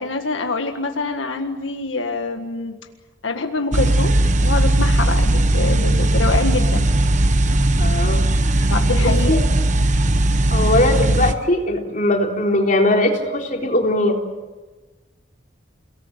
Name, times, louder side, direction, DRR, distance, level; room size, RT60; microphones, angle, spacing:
voice 1, 0.0-2.8 3.2-4.2 4.4-6.9 8.7-9.3, left 3 dB, 90° left, 5 dB, 1.7 m, -25 dB
sound 1, 3.7-11.3, right 1 dB, 40° right, 1.2 m, -17 dB
voice 2, 7.8-8.2 8.6-8.7 9.0-9.4 10.5-14.2, left 1 dB, 45° left, 1 dB, 3.9 m, -20 dB
29.5 x 18.5 x 9.0 m, 1.2 s
head